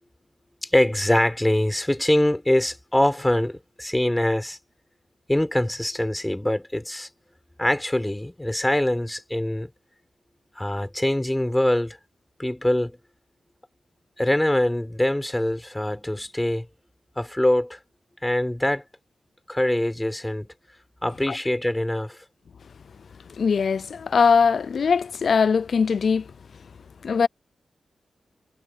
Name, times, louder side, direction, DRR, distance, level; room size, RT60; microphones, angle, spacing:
voice 1, 0.6-4.6 5.3-7.1 7.6-9.7 10.5-12.0 12.4-13.0 14.2-16.7 17.2-17.8 18.2-18.8 19.5-20.5 21.0-22.2, left 1 dB, 10° left, 4.7 m, -23 dB
voice 2, 23.4-26.3 27.0-27.3, left 5 dB, 65° left, 0.4 m, -21 dB
wide cardioid pair, 90°, 0 cm